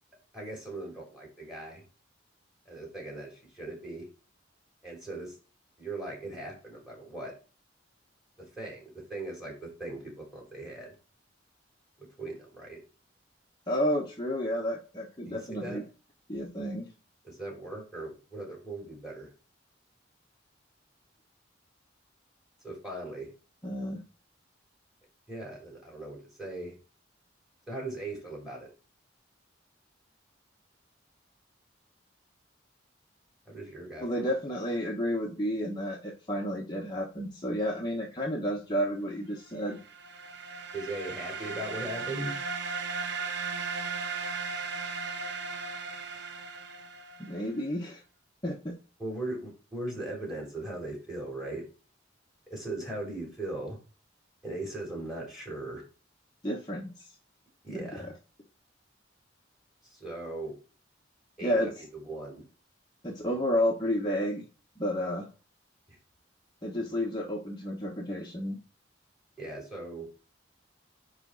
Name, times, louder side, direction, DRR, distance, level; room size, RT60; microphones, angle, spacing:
voice 1, 0.3-1.8 2.7-4.1 4.8-5.4 5.8-7.3 8.5-10.9 12.0-12.8 15.2-15.8 17.2-19.3 22.6-23.3 25.3-26.8 27.7-28.7 33.5-34.3 40.7-42.4 49.0-51.6 52.5-53.8 54.4-55.8 57.6-58.1 59.8-60.6 61.4-61.7 62.0-62.4 65.9-66.0 69.4-70.1, right 2 dB, 5° right, -1 dB, 3.9 m, -39 dB
voice 2, 13.7-15.8 16.3-16.9 23.6-24.0 34.0-39.8 47.3-48.0 48.4-48.8 56.4-57.1 57.7-57.9 61.4-61.8 63.0-64.4 64.8-65.3 66.6-68.6, equal, 25° left, -2 dB, 1.2 m, -31 dB
sound 1, 39.7-47.4, right 5 dB, 60° right, 0.9 m, -36 dB
9.9 x 3.4 x 4.0 m, 0.34 s
head